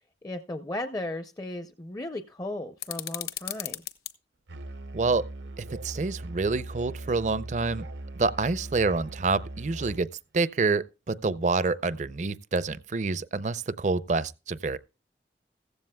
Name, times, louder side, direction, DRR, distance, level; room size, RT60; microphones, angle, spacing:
voice 1, 0.2-3.8, left 1 dB, 20° left, 0.5 m, -35 dB
sound 1, 2.8-4.1, left 11 dB, 60° left, 0.9 m, -36 dB
Musical instrument, 4.5-10.1, right 2 dB, 85° right, 0.7 m, -40 dB
voice 2, 5.6-7.9 8.2-10.1 10.3-14.8, right 3 dB, 40° right, 0.5 m, -27 dB
15.0 x 15.0 x 2.2 m
head